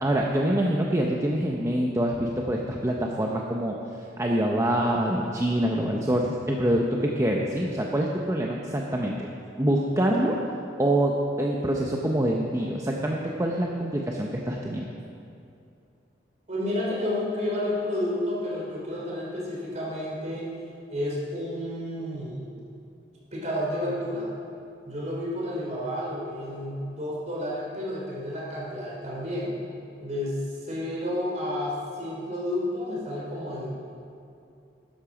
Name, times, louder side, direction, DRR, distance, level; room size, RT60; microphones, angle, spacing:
voice 1, 0.0-3.8 4.2-9.2 9.6-10.4 10.8-14.8, right 1 dB, 15° right, -1 dB, 0.7 m, -25 dB
voice 2, 16.5-20.5 20.9-22.5 23.3-24.3 24.8-29.5 30.0-33.7, left 1 dB, 40° right, -4 dB, 3.5 m, -31 dB
13.0 x 11.0 x 5.0 m, 2.6 s
head